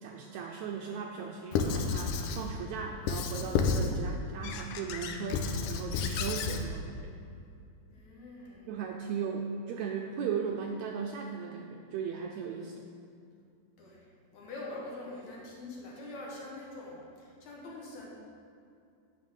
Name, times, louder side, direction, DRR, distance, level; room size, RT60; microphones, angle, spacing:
voice 1, 0.0-7.1 8.7-12.7, right 6 dB, 80° right, 2 dB, 1.6 m, -37 dB
Squeak / Writing, 1.5-2.5 3.1-4.0 4.4-6.6, left 5 dB, 85° left, 2.2 m, -31 dB
voice 2, 7.9-8.7 13.8-14.0 14.3-18.1, left 2 dB, 65° left, -3 dB, 2.7 m, -44 dB
9.5 x 5.8 x 6.4 m, 2.5 s
omnidirectional pair, 3.7 m